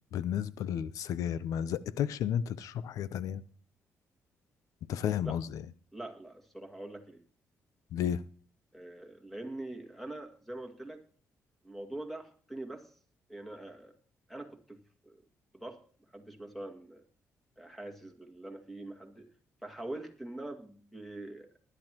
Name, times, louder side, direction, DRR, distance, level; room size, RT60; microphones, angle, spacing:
voice 1, 0.1-3.4 4.9-5.6 7.9-8.2, left 9 dB, 80° left, 0.7 m, -32 dB
voice 2, 5.9-7.2 8.7-11.0 11.6-12.9 13.3-14.0 14.3-15.2 15.5-15.8 16.1-17.0 17.6-19.3 19.6-21.6, right 1 dB, 5° left, 2.1 m, -44 dB
19.5 x 11.0 x 3.0 m
cardioid pair, 95°, 6 cm